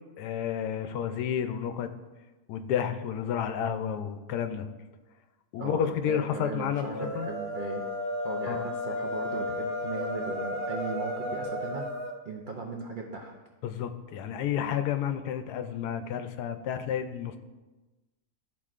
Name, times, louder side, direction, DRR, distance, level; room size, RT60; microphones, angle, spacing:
voice 1, 0.2-1.9 2.5-4.7 5.5-6.9 7.1-7.3 8.5-8.7 13.6-17.4, left 9 dB, 85° left, 9 dB, 1.1 m, -31 dB
voice 2, 5.6-7.9 8.2-11.9 12.2-13.3, right 4 dB, 70° right, 0 dB, 0.4 m, -38 dB
sound 1, 6.8-12.2, left 1 dB, 20° right, 1.0 m, -33 dB
12.0 x 4.3 x 2.4 m, 1.2 s
omnidirectional pair, 1.7 m